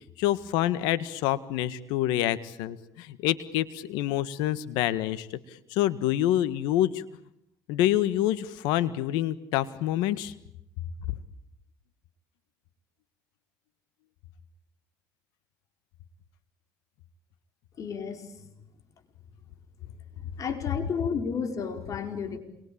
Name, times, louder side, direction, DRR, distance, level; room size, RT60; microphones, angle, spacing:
voice 1, 0.2-5.4 5.7-7.0 7.7-10.3, left 13 dB, 90° left, 14 dB, 1.7 m, -27 dB
voice 2, 17.8-18.3 20.4-22.4, left 6 dB, 50° left, 6 dB, 4.9 m, -32 dB
28.0 x 24.0 x 8.8 m, 0.79 s
cardioid pair, 90°, 7 cm